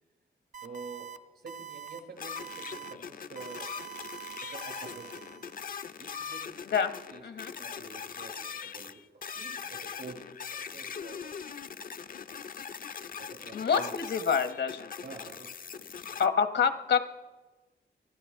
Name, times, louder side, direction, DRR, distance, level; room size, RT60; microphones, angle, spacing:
sound 1, 0.5-1.2 1.5-2.0 2.4-2.9 3.4-5.7, right 10 dB, 45° right, 0.8 m, -45 dB
voice 1, 0.6-3.7 4.5-5.5 6.0-6.7 7.1-7.2 7.6-11.4 13.2-13.9 15.0-16.2, right 3 dB, 75° right, 0 dB, 6.4 m, -48 dB
sound 2, 2.2-16.3, left 7 dB, 50° left, 0.5 m, -41 dB
voice 2, 13.5-14.9 16.2-17.0, left 6 dB, 80° left, 9 dB, 1.1 m, -27 dB
24.5 x 16.0 x 3.6 m, 1.2 s
wide cardioid pair, 100°, 18 cm